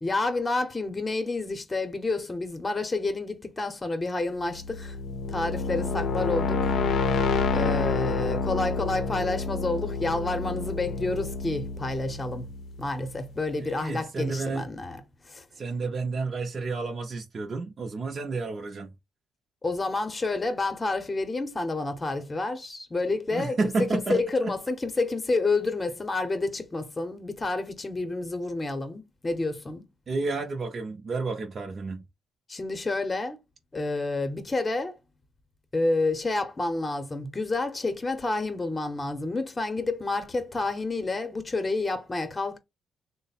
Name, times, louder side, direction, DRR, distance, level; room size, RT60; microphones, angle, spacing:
voice 1, 0.0-5.0 5.3-6.7 7.5-12.5 12.8-15.0 15.3-15.4 19.6-29.9 32.5-33.4 33.7-35.0 35.7-42.6, left 2 dB, 25° left, 0.8 m, -29 dB
sound 1, 4.5-13.3, left 4 dB, 65° left, 0.6 m, -29 dB
voice 2, 13.6-14.7 15.5-18.9 23.3-24.6 30.1-32.0, right 3 dB, 40° right, 0.6 m, -31 dB
3.3 x 2.1 x 4.1 m
cardioid pair, 90°, 0 cm